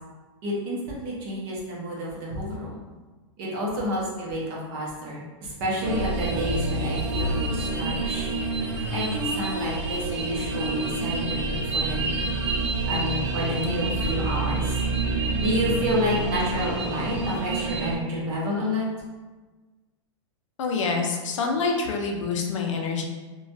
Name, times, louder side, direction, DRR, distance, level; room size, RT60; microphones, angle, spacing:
voice 1, 0.4-2.8 3.4-8.3 8.9-12.2 12.9-14.8 15.4-18.8, equal, 40° right, -4 dB, 0.9 m, -29 dB
sound 1, 5.8-18.0, right 2 dB, 75° right, 0.6 m, -27 dB
voice 2, 20.6-23.0, left 4 dB, 90° left, 1 dB, 0.6 m, -26 dB
3.0 x 2.3 x 2.6 m, 1.3 s
supercardioid pair, 150°, 16 cm